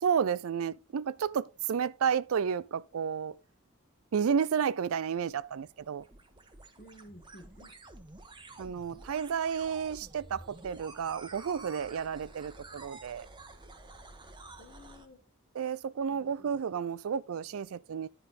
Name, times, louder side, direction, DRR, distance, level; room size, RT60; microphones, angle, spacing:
voice 1, 0.0-3.4 4.1-6.0 8.6-13.3 15.5-18.1, right 7 dB, 70° right, 0.4 m, -31 dB
sound 1, 5.3-15.1, right 2 dB, 20° right, 1.0 m, -50 dB
voice 2, 6.8-7.7 14.6-15.2 16.1-16.6, equal, 40° left, 1.7 m, -53 dB
10.5 x 5.2 x 4.1 m
head